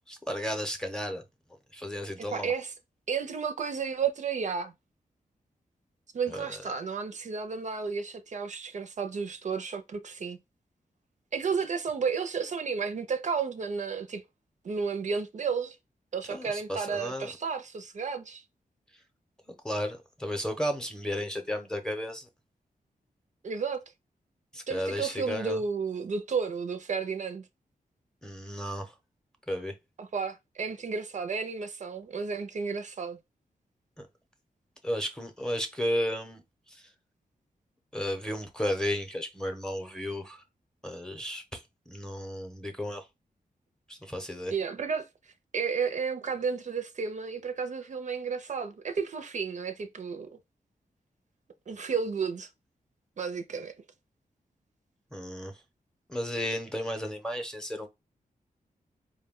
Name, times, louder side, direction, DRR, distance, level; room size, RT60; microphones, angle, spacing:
voice 1, 0.1-1.2 1.7-2.5 6.3-6.5 16.3-17.3 19.5-22.3 24.5-25.6 28.2-28.9 29.5-29.7 34.0-34.1 34.8-36.4 36.7-36.9 37.9-40.4 40.8-41.6 41.9-43.1 43.9-44.5 55.1-55.5 56.1-57.9, equal, 5° left, 0.7 m, -33 dB
voice 2, 2.2-2.7 3.1-4.7 6.1-10.4 11.3-14.2 14.6-15.8 16.1-18.4 23.4-23.8 24.7-27.5 30.0-33.2 44.5-45.1 45.5-50.4 51.7-52.5 53.2-53.7, right 5 dB, 55° right, 0.5 m, -32 dB
4.5 x 2.2 x 3.6 m
wide cardioid pair, 160°, 15 cm